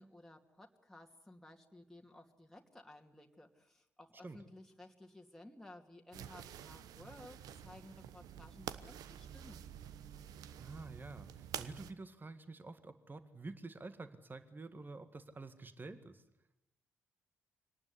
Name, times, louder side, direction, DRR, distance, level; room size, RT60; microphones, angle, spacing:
voice 1, 0.0-9.6, left 1 dB, 5° left, 2 dB, 2.7 m, -56 dB
sound 1, 6.1-11.9, right 10 dB, 70° right, 1.1 m, -48 dB
voice 2, 10.6-16.2, right 3 dB, 30° right, 11 dB, 1.9 m, -49 dB
24.5 x 19.0 x 9.9 m, 0.86 s
hypercardioid pair, 40°, 7 cm